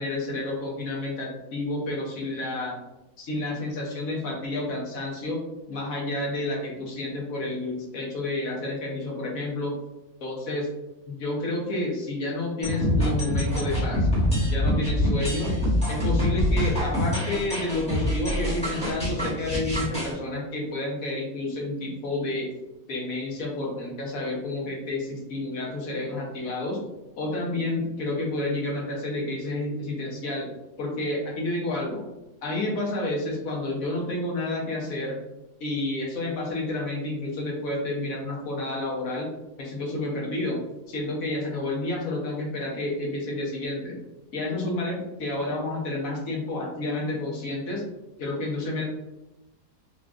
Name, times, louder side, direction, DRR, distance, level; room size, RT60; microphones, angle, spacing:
voice 1, 0.0-2.8 3.2-5.4 5.7-9.8 10.2-10.7 11.1-14.1 14.5-15.5 15.9-22.5 22.9-26.8 27.2-30.5 30.8-32.0 32.4-35.2 35.6-39.3 39.6-44.0 44.3-47.8 48.2-48.8, left 2 dB, 65° left, -2 dB, 1.1 m, -30 dB
sound 1, 12.6-20.1, left 1 dB, 5° left, 0.9 m, -25 dB
3.8 x 2.2 x 2.4 m, 0.98 s
omnidirectional pair, 1.6 m